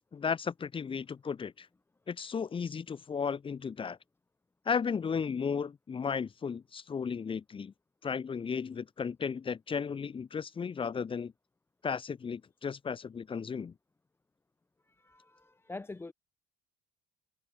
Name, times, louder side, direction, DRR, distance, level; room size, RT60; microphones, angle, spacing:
voice 1, 0.1-1.7 2.1-4.0 4.6-7.7 8.0-11.3 11.8-13.7, left 6 dB, 30° left, 1.3 m, -34 dB
voice 2, 14.9-16.1, left 3 dB, 15° left, 0.8 m, -45 dB
cardioid pair, 110°, 18 cm